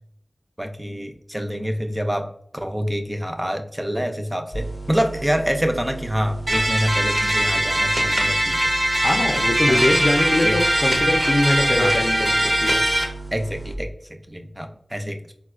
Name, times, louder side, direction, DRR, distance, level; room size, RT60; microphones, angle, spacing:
voice 1, 0.6-2.3 2.5-8.6 9.7-9.9 10.4-10.6 11.6-11.9 13.3-13.9 14.3-15.3, equal, 10° right, 5 dB, 0.4 m, -26 dB
sound 1, 4.5-13.8, right 3 dB, 30° left, 0.7 m, -35 dB
sound 2, 6.5-13.0, right 1 dB, 75° right, 0.8 m, -21 dB
voice 2, 9.0-12.8, left 1 dB, 65° left, 4 dB, 0.4 m, -22 dB
4.0 x 2.1 x 2.3 m, 0.66 s
wide cardioid pair, 65°, 0 cm